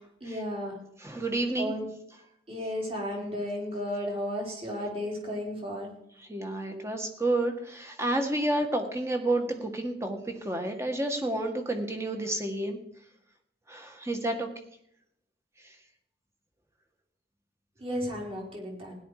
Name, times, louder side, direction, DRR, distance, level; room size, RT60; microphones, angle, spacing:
voice 1, 0.2-0.8 1.6-1.8 2.5-5.9 17.8-19.0, equal, 30° right, -1 dB, 4.5 m, -33 dB
voice 2, 1.0-1.7 6.3-10.2 10.4-12.8 13.7-14.5, right 1 dB, 15° right, 4 dB, 1.8 m, -30 dB
16.5 x 11.0 x 5.0 m, 0.71 s
head